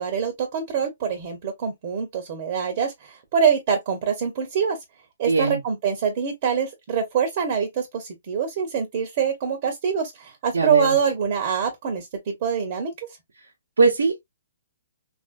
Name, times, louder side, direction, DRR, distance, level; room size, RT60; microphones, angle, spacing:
voice 1, 0.0-4.8 5.2-12.1 12.4-12.9, right 7 dB, 45° right, 1.0 m, -24 dB
voice 2, 5.3-5.6 10.5-10.9 13.8-14.2, right 4 dB, 80° right, 1.0 m, -20 dB
3.2 x 2.6 x 2.5 m
hypercardioid pair, 140°, 0 cm